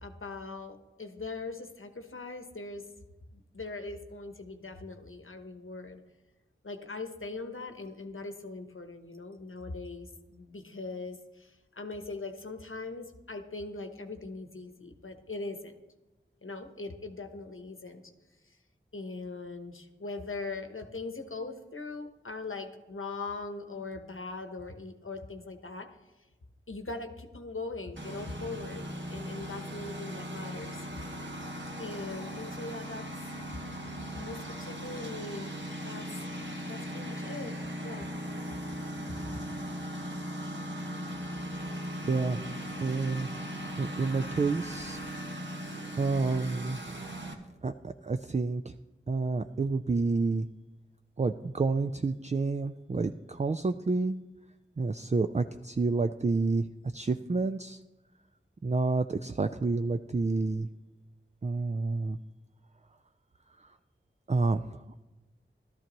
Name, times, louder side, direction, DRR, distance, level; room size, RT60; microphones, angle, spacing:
voice 1, 0.0-2.8 3.3-6.0 6.6-15.8 16.4-18.0 18.5-18.6 18.9-25.9 26.7-30.8 31.8-33.1 33.5-36.3 36.7-37.6 37.8-38.1, left 3 dB, 75° left, 7 dB, 0.9 m, -41 dB
Engine, 28.0-47.3, equal, 60° right, 1.4 m, -38 dB
voice 2, 42.0-42.4 42.8-43.3 43.8-45.0 46.0-46.8 47.6-48.7 49.1-50.5 51.2-54.2 54.8-56.7 56.9-57.8 58.6-60.7 61.4-62.2 63.6-63.7 64.3-64.8, right 3 dB, 35° right, 8 dB, 0.4 m, -29 dB
14.0 x 12.5 x 3.0 m, 1.1 s
wide cardioid pair, 45°, 21 cm